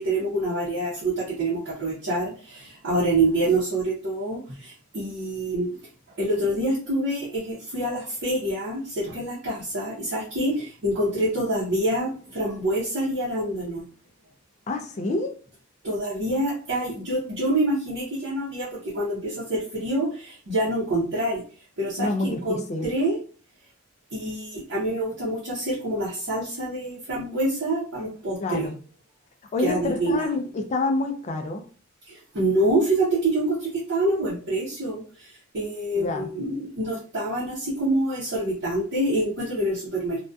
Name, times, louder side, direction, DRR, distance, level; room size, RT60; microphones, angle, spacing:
voice 1, 0.0-5.7 6.2-13.8 15.8-21.4 21.8-23.2 24.1-28.7 29.6-30.3 32.1-40.3, right 1 dB, 65° right, -7 dB, 0.7 m, -26 dB
voice 2, 14.7-15.3 22.0-22.9 28.4-28.8 29.5-31.6 35.9-36.3, left 2 dB, 35° left, 6 dB, 0.3 m, -27 dB
2.5 x 2.2 x 2.2 m, 0.41 s
head